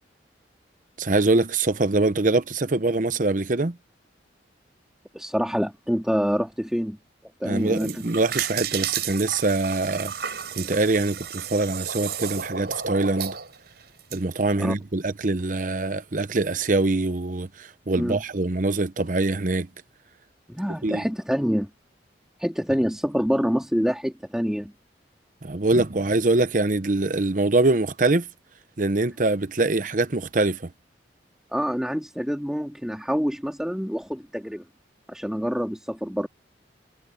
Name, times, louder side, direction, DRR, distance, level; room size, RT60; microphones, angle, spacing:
voice 1, 1.0-3.8 7.4-10.1 10.6-13.4 14.1-19.7 20.8-21.0 25.4-28.3 28.8-30.7, right 2 dB, 45° right, 0.8 m, -23 dB
voice 2, 5.1-7.0 7.4-8.0 14.6-14.7 18.0-18.2 20.5-21.7 22.4-24.7 31.5-34.6 35.1-36.3, equal, 5° right, 2.9 m, -26 dB
sound 1, 7.6-14.2, right 7 dB, 60° right, 6.4 m, -32 dB
head